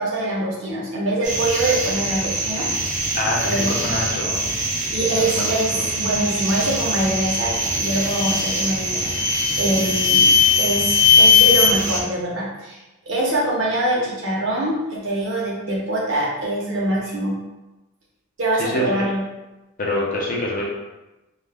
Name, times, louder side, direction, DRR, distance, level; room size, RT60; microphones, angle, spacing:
voice 1, 0.0-2.7 3.0-3.2 3.4-3.8 4.9-10.3 10.6-12.8 13.1-17.4 18.4-19.2, right 1 dB, 65° right, -4 dB, 0.7 m, -24 dB
sound 1, 1.2-12.0, right 2 dB, 35° right, 0.4 m, -25 dB
voice 2, 3.2-4.5 5.1-5.8 18.6-19.0 19.8-20.6, left 1 dB, 40° left, -2 dB, 0.5 m, -26 dB
sound 2, 7.2-7.5 8.0-8.5 9.0-11.7, left 7 dB, 85° left, 0.7 m, -17 dB
2.3 x 2.1 x 3.3 m, 1.0 s
head